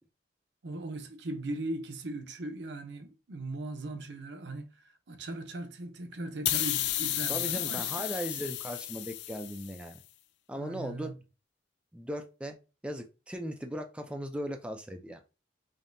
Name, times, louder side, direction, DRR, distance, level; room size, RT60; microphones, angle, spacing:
voice 1, 0.6-8.1 10.6-11.2, right 2 dB, 75° right, 0.7 m, -39 dB
sound 1, 6.4-9.8, left 14 dB, 70° left, 0.3 m, -32 dB
voice 2, 7.3-10.0 10.5-11.1 11.9-12.5 12.8-15.2, equal, 5° right, 0.4 m, -38 dB
5.2 x 2.7 x 2.6 m
head